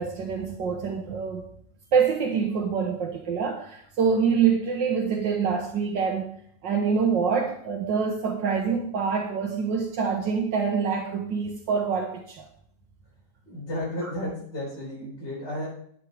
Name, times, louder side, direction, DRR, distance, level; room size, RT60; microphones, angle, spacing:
voice 1, 0.0-1.4 1.9-6.3 6.6-12.5 14.0-14.1, right 6 dB, 80° right, 0 dB, 2.1 m, -25 dB
voice 2, 13.5-15.7, left 1 dB, 70° left, -7 dB, 5.2 m, -33 dB
11.5 x 8.7 x 4.9 m, 0.64 s
omnidirectional pair, 1.9 m